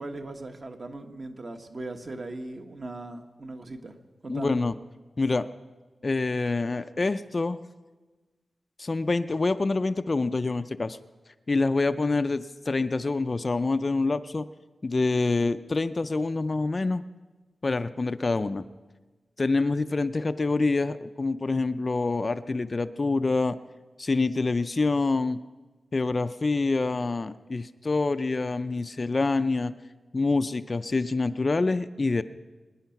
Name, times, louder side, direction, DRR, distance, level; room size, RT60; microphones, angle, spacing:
voice 1, 0.0-4.0 4.2-4.6, right 2 dB, 40° right, 5 dB, 1.3 m, -38 dB
voice 2, 4.3-4.7 5.2-5.5 6.0-7.6 8.8-11.0 11.5-14.5 14.8-17.0 17.6-18.6 19.4-23.6 24.0-25.4 25.9-29.7 30.1-32.2, left 3 dB, 35° left, 11 dB, 0.4 m, -26 dB
24.0 x 10.0 x 5.8 m, 1.3 s
wide cardioid pair, 130°, 0 cm